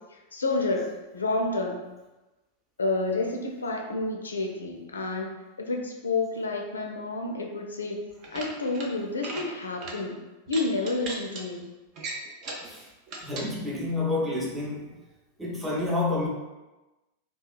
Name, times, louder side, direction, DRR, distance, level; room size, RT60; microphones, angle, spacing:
voice 1, 0.1-1.9 2.8-5.3 5.6-8.0 8.3-10.2 10.5-11.7, left 3 dB, 75° left, 2 dB, 0.4 m, -29 dB
sound 1, 8.1-8.9 9.2-9.5 9.8-10.0 10.5-11.4 12.0-12.7 13.1-13.5, right 2 dB, 40° right, 0.4 m, -37 dB
voice 2, 13.2-14.9 15.4-16.3, left 2 dB, 10° right, -5 dB, 0.7 m, -29 dB
2.8 x 2.3 x 2.4 m, 1.1 s
figure-of-eight pair, 90°, 0 cm